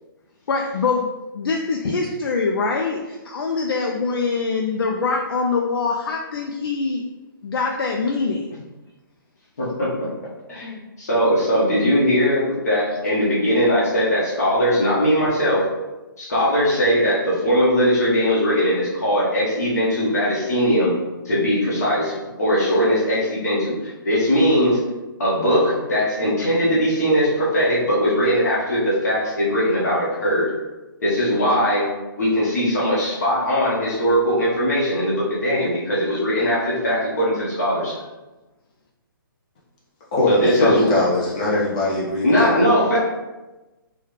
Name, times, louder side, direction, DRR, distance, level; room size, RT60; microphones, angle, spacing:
voice 1, 0.5-7.0 7.4-8.6, left 4 dB, 90° left, 0 dB, 0.4 m, -24 dB
voice 2, 9.6-10.1 10.5-15.6 16.2-20.9 21.2-24.8 25.2-30.5 31.0-31.9 32.2-38.0 40.3-40.9 42.2-43.0, equal, 45° left, -7 dB, 1.2 m, -20 dB
voice 3, 40.1-42.5, left 2 dB, 15° left, -7 dB, 0.4 m, -21 dB
3.5 x 2.3 x 3.1 m, 1.1 s
hypercardioid pair, 175°, 12 cm